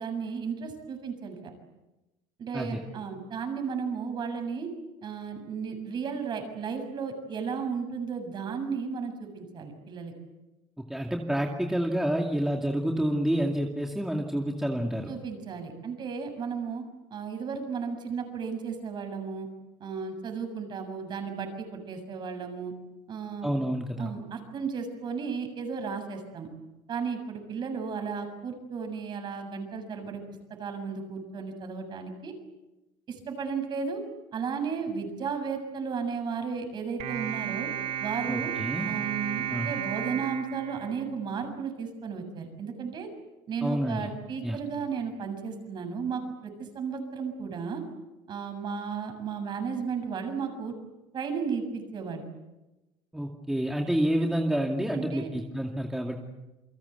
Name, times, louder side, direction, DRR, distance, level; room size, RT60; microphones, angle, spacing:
voice 1, 0.0-1.5 2.4-4.7 5.0-10.1 15.1-16.8 17.1-19.5 19.8-22.7 23.1-23.5 24.0-26.5 26.9-30.2 30.6-32.3 33.1-34.0 34.3-37.7 38.0-38.5 38.9-43.1 43.5-47.8 48.3-50.7 51.1-52.3 54.9-55.3, right 6 dB, 35° right, 6 dB, 7.2 m, -34 dB
voice 2, 10.8-15.1 23.4-24.1 38.3-38.9 39.5-39.7 43.6-44.1 44.4-44.6 53.1-56.2, right 1 dB, 5° right, 1 dB, 2.4 m, -28 dB
sound 1, 37.0-41.5, right 9 dB, 60° right, 3.4 m, -33 dB
29.0 x 24.0 x 8.2 m, 1.0 s
cardioid pair, 140°, 13 cm